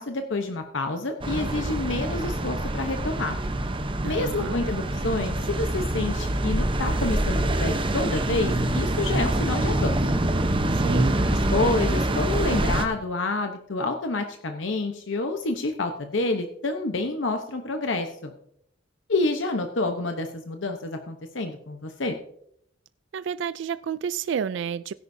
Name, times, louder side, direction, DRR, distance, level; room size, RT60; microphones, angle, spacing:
voice 1, 0.0-3.4 4.0-10.0 11.3-18.3 19.1-22.2, left 2 dB, 80° left, 1.0 m, -28 dB
sound 1, 1.2-12.9, right 1 dB, 30° right, 0.9 m, -25 dB
voice 2, 4.0-4.6 10.7-11.2 23.1-24.9, right 7 dB, 70° right, 0.3 m, -30 dB
16.5 x 10.0 x 2.7 m
head